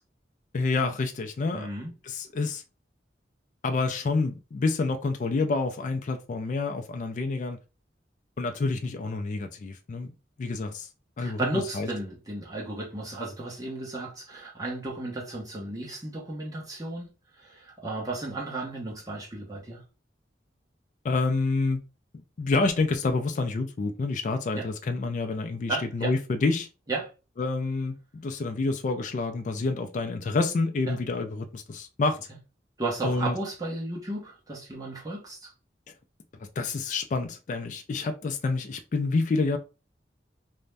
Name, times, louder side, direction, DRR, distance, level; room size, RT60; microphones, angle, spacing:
voice 1, 0.5-1.7 2.0-2.6 3.6-7.6 8.4-10.1 10.4-10.9 11.2-11.9 21.0-21.8 22.4-26.7 27.4-32.2 33.0-33.4 36.6-39.6, left 3 dB, 45° left, 0.3 m, -28 dB
voice 2, 1.5-1.9 11.2-17.1 17.4-19.8 24.5-24.7 25.7-26.1 26.9-27.1 30.9-31.0 32.8-35.5, right 2 dB, 20° right, 0.9 m, -34 dB
2.5 x 2.1 x 3.2 m
head